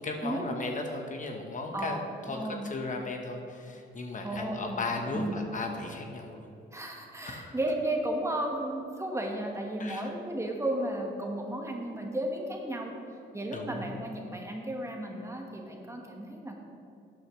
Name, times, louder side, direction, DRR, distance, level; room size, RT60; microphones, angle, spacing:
voice 1, 0.0-2.0 2.3-6.5 7.2-7.4 9.8-10.1 13.5-14.0, left 3 dB, 40° left, 2 dB, 1.1 m, -36 dB
voice 2, 2.3-2.6 4.2-5.4 6.7-12.9 13.3-16.5, right 1 dB, 15° right, 1 dB, 1.4 m, -34 dB
12.0 x 8.4 x 3.1 m, 2.7 s
cardioid pair, 90°, 20 cm